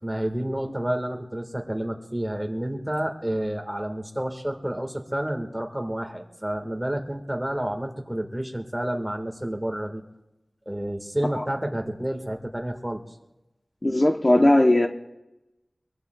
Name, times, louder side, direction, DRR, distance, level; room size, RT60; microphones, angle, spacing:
voice 1, 0.0-10.0 10.6-13.0, right 1 dB, 10° right, 1.5 m, -30 dB
voice 2, 13.8-14.9, left 1 dB, 35° left, 0.7 m, -18 dB
23.0 x 22.5 x 2.3 m
wide cardioid pair, 60°, 0 cm